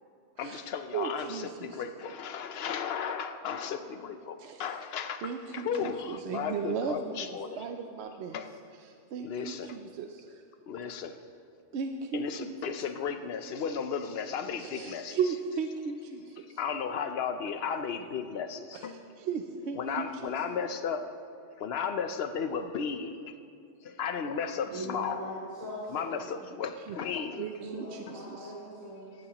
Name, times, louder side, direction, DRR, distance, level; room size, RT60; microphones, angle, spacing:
voice 1, 0.4-7.6 8.3-8.5 9.2-9.8 10.7-11.1 12.1-15.2 16.6-19.0 19.7-21.1 21.6-23.3 23.8-25.2 25.9-27.5, left 6 dB, 60° left, 9 dB, 0.9 m, -34 dB
voice 2, 0.9-1.8 4.4-4.6 5.2-8.4 8.8-10.4 11.7-12.6 14.6-16.6 18.7-20.3 26.9-27.0 27.4-28.5, right 6 dB, 70° right, 5 dB, 0.9 m, -36 dB
voice 3, 24.6-26.1 27.6-29.2, equal, 30° right, -10 dB, 3.5 m, -40 dB
17.5 x 13.5 x 3.0 m, 2.4 s
omnidirectional pair, 1.2 m